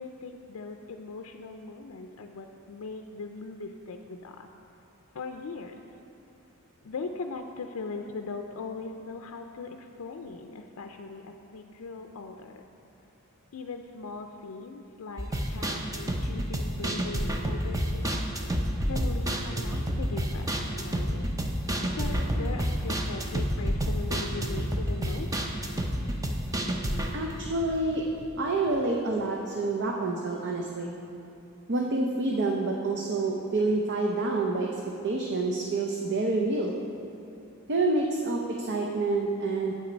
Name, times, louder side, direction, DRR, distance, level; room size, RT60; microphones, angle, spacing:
voice 1, 0.0-4.5 5.1-5.8 6.8-12.7 13.5-18.2 18.8-21.3 21.8-25.3, left 4 dB, 70° left, 5 dB, 0.4 m, -40 dB
sound 1, 15.2-28.4 28.7-28.8 29.1-29.2, equal, 15° right, 0.6 m, -29 dB
voice 2, 27.1-28.0 28.4-30.9 31.7-34.7 35.0-36.7 37.7-39.7, right 2 dB, 55° right, 1 dB, 0.6 m, -28 dB
8.5 x 7.8 x 5.1 m, 2.7 s
head